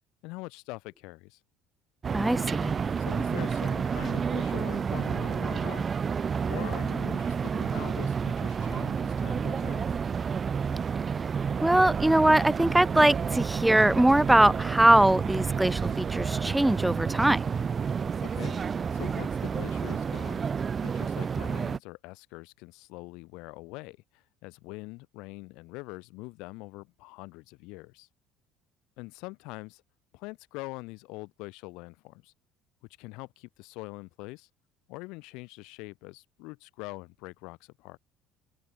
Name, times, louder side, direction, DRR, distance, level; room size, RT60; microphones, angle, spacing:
voice 1, 0.2-1.4 3.0-5.9 6.5-9.9 18.2-18.6 18.9-20.4 20.8-28.1 29.0-29.8 30.1-32.3 33.0-34.5 34.9-38.0, left 25 dB, 80° left, 4.2 m, -43 dB
sound 1, 2.0-21.8, right 6 dB, 35° right, 1.4 m, -30 dB
voice 2, 2.1-2.8 11.6-17.5, right 1 dB, 5° right, 0.4 m, -22 dB
supercardioid pair, 100°, 0 cm